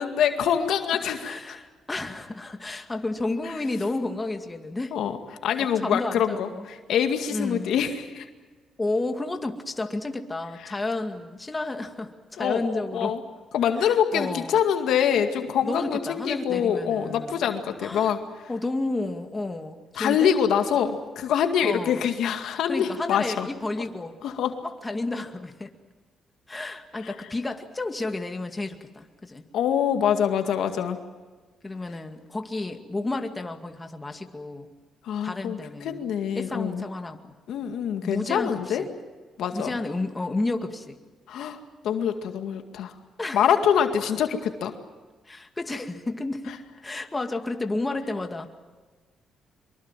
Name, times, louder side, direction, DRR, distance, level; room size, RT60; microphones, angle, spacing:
voice 1, 0.0-1.6 3.5-3.6 4.9-5.2 5.4-8.3 10.6-10.8 12.4-13.2 13.5-18.5 19.9-23.5 24.2-24.5 27.0-27.1 29.5-31.0 35.0-36.9 37.5-38.9 39.4-39.8 41.3-42.9 43.3-44.8 46.5-46.6, left 8 dB, 75° left, 6 dB, 2.1 m, -25 dB
voice 2, 1.2-4.9 5.8-6.7 7.3-7.7 8.8-13.1 13.8-14.6 15.6-17.4 17.8-18.1 18.5-20.3 21.6-22.1 22.7-24.2 24.6-25.7 26.5-29.4 31.6-34.7 35.2-36.1 36.4-37.2 38.0-38.9 39.5-41.0 43.2-43.4 45.3-46.6 46.8-48.5, left 2 dB, 20° left, 5 dB, 2.2 m, -31 dB
24.0 x 23.5 x 7.5 m, 1.4 s
cardioid pair, 90°, 0 cm